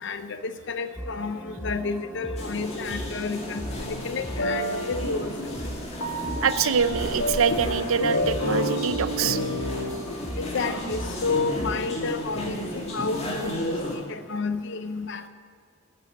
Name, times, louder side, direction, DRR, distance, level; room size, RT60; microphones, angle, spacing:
voice 1, 0.0-5.4 7.5-7.6 10.4-12.6 12.9-15.3, left 4 dB, 55° left, 10 dB, 0.6 m, -31 dB
sound 1, 1.0-11.8, equal, ahead, 1.0 m, -38 dB
sound 2, 2.4-14.0, left 1 dB, 30° left, 2.1 m, -34 dB
sound 3, 3.6-9.9, equal, 80° left, 2.4 m, -30 dB
voice 2, 6.4-9.4, right 6 dB, 75° right, 13 dB, 0.6 m, -24 dB
13.0 x 8.9 x 7.9 m, 2.1 s
head